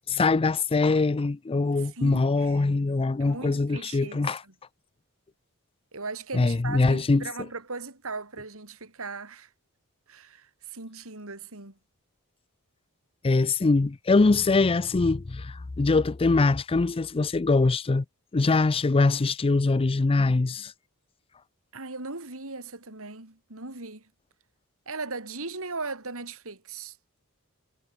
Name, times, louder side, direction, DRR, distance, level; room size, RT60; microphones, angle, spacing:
voice 1, 0.1-4.4 6.3-7.2 13.2-18.0 18.3-20.7, left 3 dB, 25° left, 0.4 m, -23 dB
voice 2, 1.8-2.7 3.2-4.5 5.9-9.5 10.1-11.8 21.7-24.1 24.9-27.0, right 3 dB, 65° right, 4.5 m, -38 dB
head